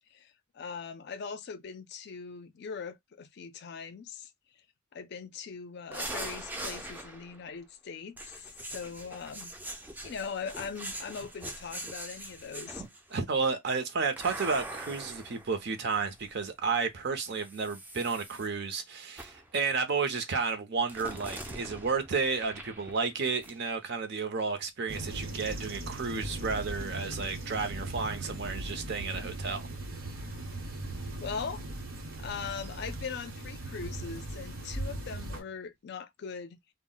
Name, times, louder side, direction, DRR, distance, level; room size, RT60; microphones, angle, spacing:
voice 1, 0.0-4.3 4.9-9.5 10.0-12.8 31.2-31.7 32.2-36.6, left 6 dB, 55° left, 0.4 m, -40 dB
sound 1, 5.9-7.4 8.2-13.2 14.2-16.3 17.3-18.5 19.2-19.5 20.9-23.2 23.4-23.6, right 1 dB, 10° right, 0.4 m, -42 dB
voice 2, 13.1-29.7, right 5 dB, 55° right, 0.6 m, -32 dB
sound 2, 24.9-35.4, right 1 dB, 80° right, 0.9 m, -39 dB
2.1 x 2.0 x 3.7 m
head